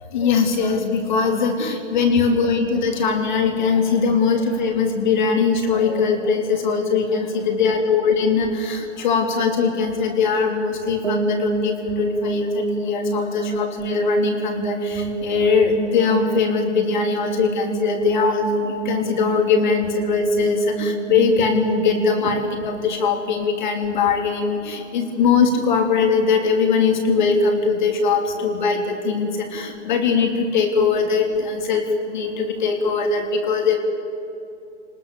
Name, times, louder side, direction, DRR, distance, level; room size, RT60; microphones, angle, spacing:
voice 1, 0.1-33.8, left 5 dB, 40° left, 4 dB, 3.3 m, -21 dB
sound 1, 11.0-23.9, right 4 dB, 75° right, 5.4 m, -28 dB
28.5 x 20.0 x 7.0 m, 2.8 s
hypercardioid pair, 155°, 36 cm